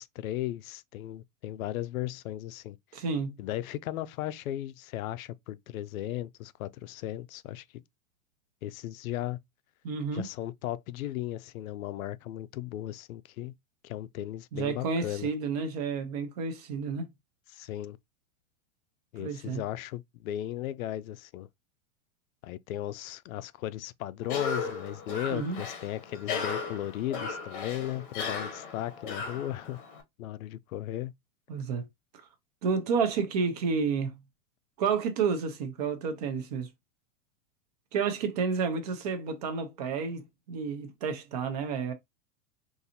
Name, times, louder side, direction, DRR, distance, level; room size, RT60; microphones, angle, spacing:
voice 1, 0.0-2.8 3.4-7.6 8.6-9.4 10.1-13.5 13.8-15.3 17.5-18.0 19.1-21.5 22.4-29.8 30.2-31.1, left 13 dB, 80° left, 0.5 m, -36 dB
voice 2, 2.9-3.4 9.8-10.2 14.5-17.1 19.2-19.6 25.3-25.6 31.5-31.9 32.6-34.1 34.8-36.7 37.9-41.9, right 5 dB, 30° right, 0.5 m, -30 dB
Cough, 24.2-30.0, left 5 dB, 40° left, 0.8 m, -36 dB
3.9 x 2.6 x 2.7 m
supercardioid pair, 175°, 41 cm